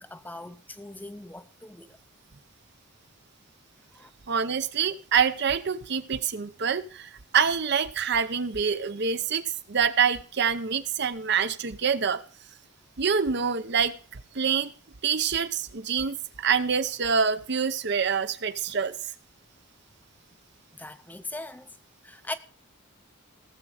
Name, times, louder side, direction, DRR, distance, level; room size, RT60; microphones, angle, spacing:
voice 1, 0.0-2.0 3.9-4.1 20.7-21.7 22.0-22.3, left 2 dB, 10° left, 0.5 m, -40 dB
voice 2, 4.3-12.2 13.0-13.9 14.3-14.7 15.0-19.0, right 6 dB, 55° right, 0.7 m, -26 dB
16.5 x 7.5 x 4.9 m
head